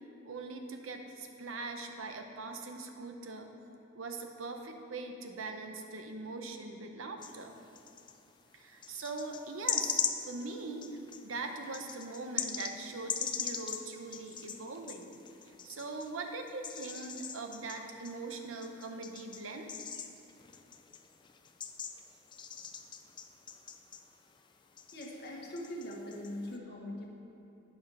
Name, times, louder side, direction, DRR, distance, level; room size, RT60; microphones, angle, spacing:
voice 1, 0.2-3.5 3.9-7.6 8.5-10.8 11.2-15.1 15.4-19.7, right 3 dB, 80° right, 5 dB, 0.8 m, -42 dB
sound 1, 7.2-8.2 8.8-16.1 16.5-24.5 24.8-26.6, left 7 dB, 25° left, 0.4 m, -40 dB
voice 2, 24.9-27.1, left 1 dB, 55° left, -2 dB, 1.4 m, -41 dB
9.7 x 5.7 x 5.5 m, 2.7 s
head